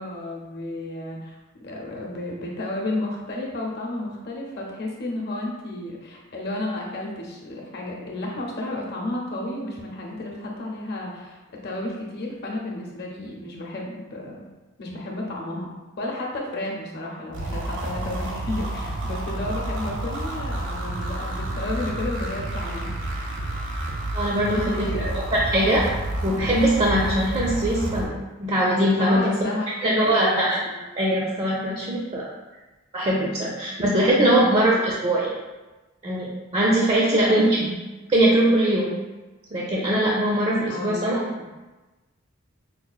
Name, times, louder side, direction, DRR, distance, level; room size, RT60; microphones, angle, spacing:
voice 1, 0.0-14.3 14.8-15.7 16.0-23.0 24.5-25.4 29.0-30.4 30.6-30.8 34.2-34.5 37.0-37.6 40.7-41.5, left 1 dB, 50° left, -2 dB, 0.7 m, -32 dB
sound 1, 17.3-28.1, right 1 dB, 65° right, 0.6 m, -30 dB
voice 2, 24.1-24.9 25.3-25.8 26.2-28.1 28.4-29.3 29.8-30.5 31.0-32.3 32.9-35.3 36.0-36.3 36.5-37.5 38.1-38.9 39.5-41.2, right 1 dB, 30° right, -4 dB, 0.4 m, -21 dB
4.7 x 2.3 x 2.4 m, 1.1 s
head